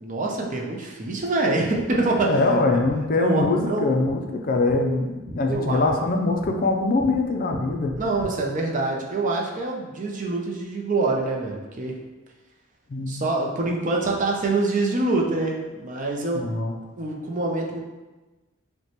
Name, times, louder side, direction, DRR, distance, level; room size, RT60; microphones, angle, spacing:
voice 1, 0.0-2.4 3.1-3.8 5.5-5.9 8.0-12.0 13.1-16.5 17.0-17.8, right 2 dB, 40° right, 0 dB, 0.5 m, -25 dB
sound 1, 1.7-8.3, equal, 15° left, 1.4 m, -41 dB
voice 2, 2.3-7.9 12.9-13.2 16.3-16.7, left 2 dB, 45° left, 3 dB, 0.4 m, -23 dB
5.7 x 2.2 x 2.9 m, 1.2 s
head